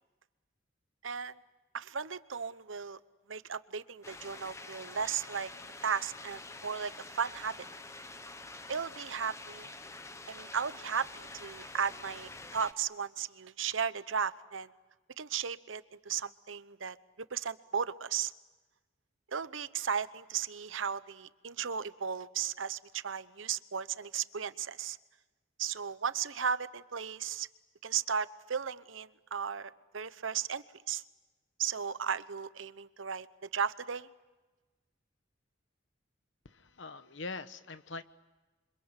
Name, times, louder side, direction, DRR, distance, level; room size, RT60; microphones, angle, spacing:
voice 1, 1.0-1.4 1.7-3.0 3.3-5.5 5.8-7.6 8.7-9.7 10.3-14.7 15.2-18.3 19.3-25.0 25.6-27.5 27.8-31.0 31.6-34.1, right 7 dB, 75° right, 15 dB, 0.9 m, -35 dB
sound 1, 4.0-12.7, left 2 dB, 15° left, 1.1 m, -47 dB
voice 2, 36.4-38.0, left 3 dB, 65° left, 12 dB, 1.2 m, -43 dB
28.0 x 25.5 x 8.2 m, 1.2 s
head